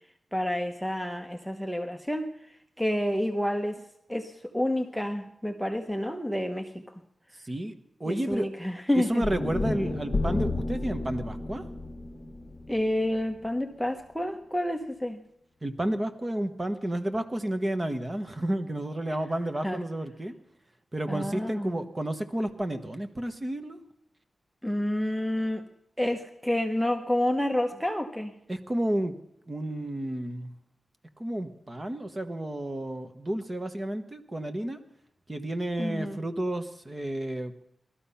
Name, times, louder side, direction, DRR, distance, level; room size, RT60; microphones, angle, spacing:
voice 1, 0.3-2.3 2.8-3.8 4.1-6.7 8.1-9.2 12.7-15.2 19.6-19.8 21.1-21.8 24.6-25.6 26.0-28.3 35.8-36.2, left 1 dB, ahead, 5 dB, 0.9 m, -29 dB
voice 2, 7.4-7.7 8.0-8.5 8.9-11.6 15.6-20.3 20.9-23.8 28.5-29.1 29.5-30.5 31.2-34.8 35.3-37.6, right 1 dB, 20° right, 7 dB, 1.2 m, -31 dB
sound 1, 9.2-13.5, left 2 dB, 30° left, 1.1 m, -31 dB
19.5 x 13.0 x 5.7 m, 0.76 s
wide cardioid pair, 150°, 0 cm